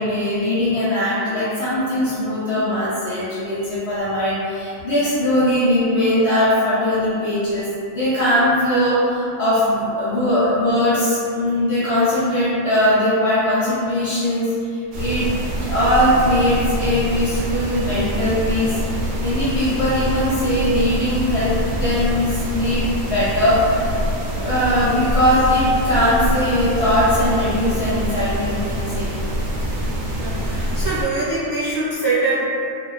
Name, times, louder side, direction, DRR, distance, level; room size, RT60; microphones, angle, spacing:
voice 1, 0.0-7.7 7.9-15.3 15.6-18.8 19.2-23.9 24.4-29.1, left 1 dB, 60° left, -11 dB, 0.8 m, -20 dB
sound 1, 14.9-31.0, equal, 75° right, 0.9 m, -25 dB
voice 2, 30.1-32.5, right 3 dB, 20° right, -11 dB, 0.7 m, -23 dB
2.4 x 2.2 x 2.4 m, 2.5 s
omnidirectional pair, 1.4 m